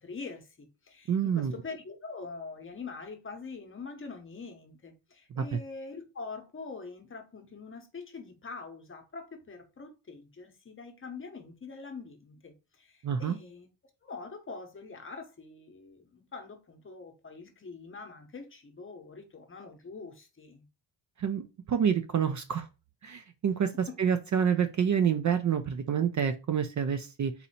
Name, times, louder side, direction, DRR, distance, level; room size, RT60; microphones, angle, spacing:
voice 1, 0.0-13.7 14.0-20.7, left 4 dB, 30° left, 0.8 m, -44 dB
voice 2, 1.1-1.5 5.4-5.6 13.0-13.4 21.2-22.7 23.0-27.5, right 7 dB, 45° right, 0.4 m, -28 dB
4.2 x 2.7 x 4.1 m
wide cardioid pair, 160°, 44 cm